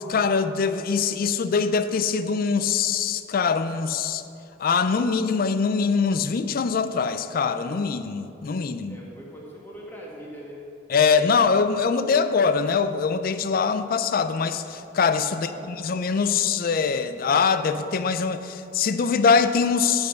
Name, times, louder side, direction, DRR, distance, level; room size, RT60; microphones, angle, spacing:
voice 1, 0.0-4.2 4.6-9.0 10.9-20.1, left 5 dB, 50° left, 11 dB, 0.4 m, -23 dB
voice 2, 8.9-10.7 15.3-15.9, equal, 10° left, -4 dB, 1.6 m, -42 dB
10.0 x 5.1 x 5.8 m, 2.6 s
head